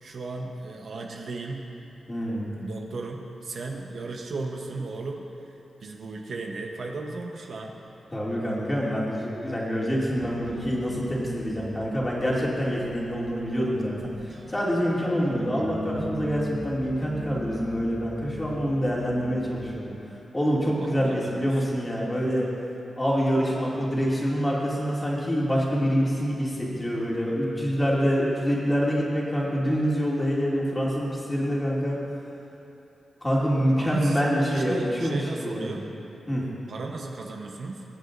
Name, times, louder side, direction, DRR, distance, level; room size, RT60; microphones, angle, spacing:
voice 1, 0.0-1.7 2.6-5.3 5.8-7.8 20.7-21.6 33.7-35.9 36.7-37.8, right 3 dB, 65° right, 1 dB, 0.9 m, -35 dB
voice 2, 2.1-2.5 8.1-19.9 20.3-22.5 23.0-32.0 33.2-35.7 36.3-36.5, equal, 15° left, -5 dB, 2.4 m, -26 dB
sound 1, 10.0-19.8, right 1 dB, 50° right, 1.3 m, -39 dB
21.5 x 8.1 x 2.6 m, 2.9 s
cardioid pair, 95°, 0 cm